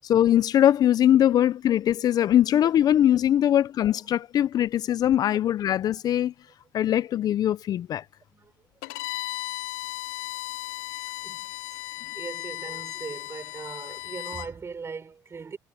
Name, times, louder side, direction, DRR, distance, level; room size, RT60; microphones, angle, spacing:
voice 1, 0.0-6.3 6.7-8.0, left 11 dB, 55° left, 0.8 m, -21 dB
Bowed string instrument, 8.8-14.5, left 20 dB, 80° left, 2.5 m, -36 dB
voice 2, 10.9-15.6, right 5 dB, 35° right, 5.9 m, -40 dB
hypercardioid pair, 60°, 8 cm